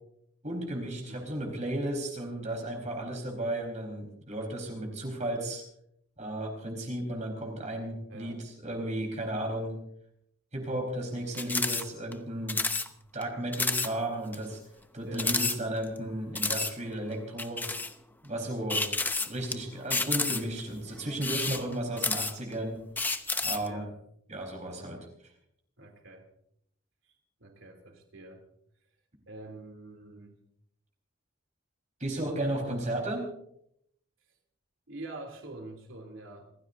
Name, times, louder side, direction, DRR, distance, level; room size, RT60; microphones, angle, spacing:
voice 1, 0.4-5.6 6.2-9.7 10.5-12.6 13.1-14.6 14.9-17.6 18.2-18.8 19.3-22.8 23.4-23.8 24.3-25.1 32.0-33.2, right 1 dB, 35° right, 1 dB, 4.3 m, -34 dB
voice 2, 8.1-8.4 15.0-15.3 18.4-18.9 23.7-23.9 25.8-26.2 27.0-27.1 27.4-28.4 29.3-30.4 32.5-32.8 34.9-36.5, right 2 dB, 70° right, 3 dB, 3.0 m, -45 dB
sound 1, 11.3-11.8 12.1-12.2 12.5-12.9 13.2-13.3 13.5-13.9 14.3-14.4 15.1-16.0 16.4-16.7 17.4-17.9 18.7-19.5 19.9-20.6 21.1-22.5 23.0-23.7, left 3 dB, 10° left, 0.7 m, -30 dB
28.0 x 15.5 x 2.7 m, 0.72 s
head